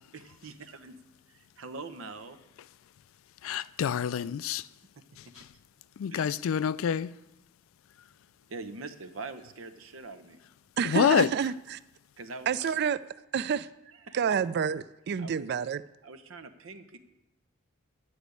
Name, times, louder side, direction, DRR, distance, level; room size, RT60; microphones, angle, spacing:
voice 1, 0.1-1.0 1.3-2.4 5.3-5.6 6.1-6.3 8.5-10.4 12.2-12.7 13.9-14.4 15.2-15.6 16.0-17.0, right 3 dB, 85° right, 0.8 m, -43 dB
voice 2, 3.4-4.7 5.2-5.3 6.0-7.1 10.8-11.3, left 8 dB, 90° left, 0.3 m, -27 dB
voice 3, 10.8-11.8 12.5-13.0 13.3-13.7 14.1-15.8, right 7 dB, 55° right, 0.4 m, -28 dB
9.9 x 5.1 x 8.1 m
head